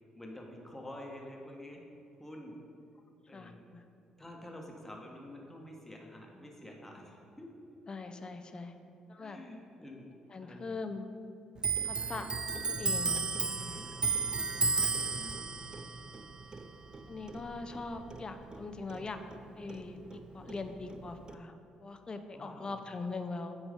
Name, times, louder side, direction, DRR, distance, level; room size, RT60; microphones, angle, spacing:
voice 1, 0.1-1.8 2.2-2.6 3.3-3.6 4.2-7.5 9.2-10.1 10.4-10.6 11.9-12.3 13.8-14.1 14.9-15.3 22.3-22.8, left 1 dB, 10° left, 0 dB, 1.3 m, -48 dB
voice 2, 3.3-3.8 7.9-8.7 9.1-9.4 10.3-11.1 11.8-12.3 12.7-13.8 17.1-19.2 19.5-21.5 21.8-23.6, left 3 dB, 35° left, 7 dB, 0.6 m, -41 dB
Clock, 11.6-18.6 18.9-20.2 20.5-21.3, right 4 dB, 30° right, 0.4 m, -34 dB
8.8 x 3.1 x 5.1 m, 2.8 s
hypercardioid pair, 50°, 3 cm